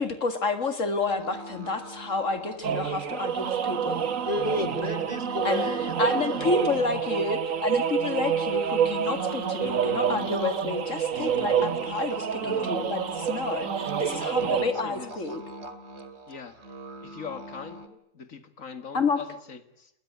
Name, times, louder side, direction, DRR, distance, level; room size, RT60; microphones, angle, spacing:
voice 1, 0.0-4.1 5.4-15.4 18.9-19.2, left 4 dB, 75° left, 9 dB, 2.5 m, -30 dB
sound 1, 1.0-17.9, right 1 dB, 55° right, 2.8 m, -42 dB
sound 2, 2.6-14.7, right 8 dB, 85° right, 1.7 m, -28 dB
voice 2, 4.2-6.7, left 2 dB, 30° left, 10 dB, 3.5 m, -32 dB
voice 3, 12.4-12.9 14.1-15.1 16.3-16.6 17.0-19.9, left 6 dB, 90° left, 10 dB, 2.3 m, -41 dB
29.5 x 20.5 x 9.5 m, 0.76 s
omnidirectional pair, 1.3 m